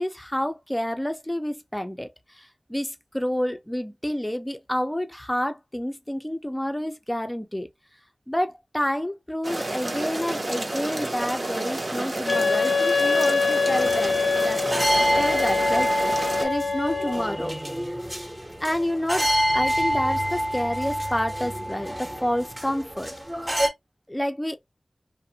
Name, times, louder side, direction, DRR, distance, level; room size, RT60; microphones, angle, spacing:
voice 1, 0.0-2.1 2.3-7.7 8.3-14.2 14.4-14.8 15.2-17.6 17.8-18.0 18.6-23.1 24.1-24.6, equal, 10° left, 0.5 m, -29 dB
sound 1, 9.4-16.5, right 2 dB, 50° right, 0.6 m, -30 dB
Wind instrument woodwind instrument, 12.3-17.3, left 4 dB, 60° left, 0.4 m, -24 dB
sound 2, 13.7-23.7, equal, 20° right, 0.8 m, -27 dB
2.5 x 2.1 x 2.7 m
wide cardioid pair, 70°, 0 cm